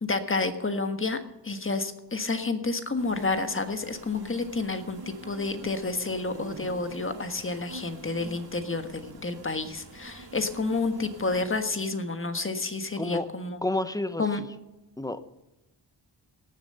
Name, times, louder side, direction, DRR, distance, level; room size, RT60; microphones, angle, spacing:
voice 1, 0.0-13.6 14.2-14.4, left 3 dB, 30° left, 7 dB, 1.5 m, -30 dB
sound 1, 3.0-11.6, right 2 dB, 60° right, 2.2 m, -45 dB
voice 2, 13.0-13.3 13.6-14.5 15.0-15.2, left 2 dB, 10° left, 12 dB, 0.8 m, -30 dB
18.0 x 7.5 x 5.5 m, 0.98 s
wide cardioid pair, 80°, 43 cm